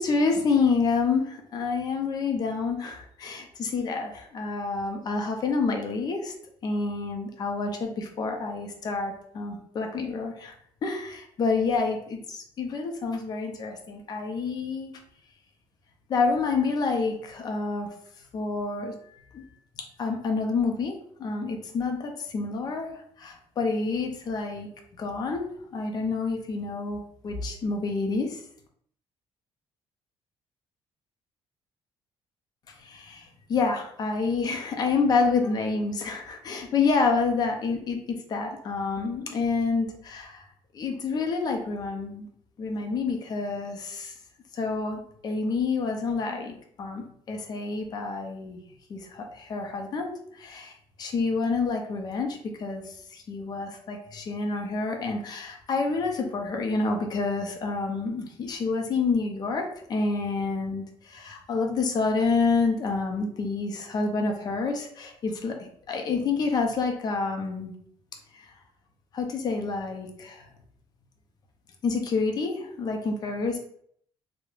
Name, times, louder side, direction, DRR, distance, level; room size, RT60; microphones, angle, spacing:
voice 1, 0.0-6.3 6.6-10.5 10.8-14.9 16.1-17.9 18.3-19.4 19.8-24.7 25.0-25.5 25.7-28.4 32.8-40.4 40.7-42.3 42.6-44.1 44.5-48.6 48.9-65.6 65.9-67.7 68.3-68.5 69.1-70.4 71.8-73.6, left 4 dB, 40° left, 3 dB, 0.4 m, -28 dB
2.3 x 2.0 x 3.0 m, 0.66 s
cardioid pair, 155°, 10 cm